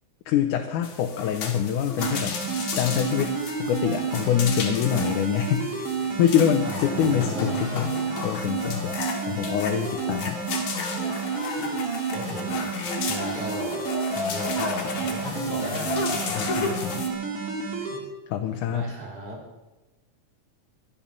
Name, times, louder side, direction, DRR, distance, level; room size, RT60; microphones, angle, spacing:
voice 1, 0.3-2.4 2.8-8.0 8.2-9.0 9.3-10.4 16.3-17.1 18.3-18.9, left 9 dB, 85° left, 4 dB, 2.4 m, -25 dB
sound 1, 0.8-17.1, left 5 dB, 65° left, 3.1 m, -33 dB
sound 2, 2.0-18.0, right 5 dB, 75° right, 4.0 m, -30 dB
voice 2, 6.6-7.7 12.1-12.7 13.0-13.9 14.1-16.5 17.9-18.1 18.6-19.4, right 1 dB, 30° right, -3 dB, 4.2 m, -37 dB
23.0 x 8.7 x 5.4 m, 1.1 s
omnidirectional pair, 3.5 m